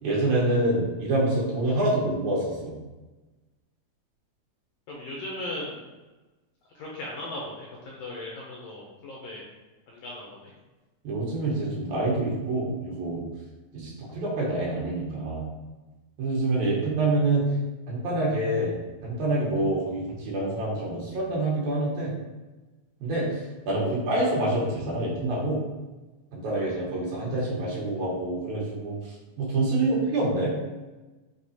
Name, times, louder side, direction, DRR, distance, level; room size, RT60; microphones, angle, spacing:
voice 1, 0.0-2.7 11.0-13.2 13.7-15.5 16.2-17.5 17.9-18.7 19.0-22.1 23.0-25.6 26.3-30.5, right 2 dB, 90° right, -5 dB, 2.5 m, -26 dB
voice 2, 4.9-5.8 6.7-9.4 9.9-10.5, left 1 dB, 75° left, -3 dB, 1.6 m, -37 dB
5.9 x 2.8 x 2.7 m, 1.2 s
omnidirectional pair, 3.3 m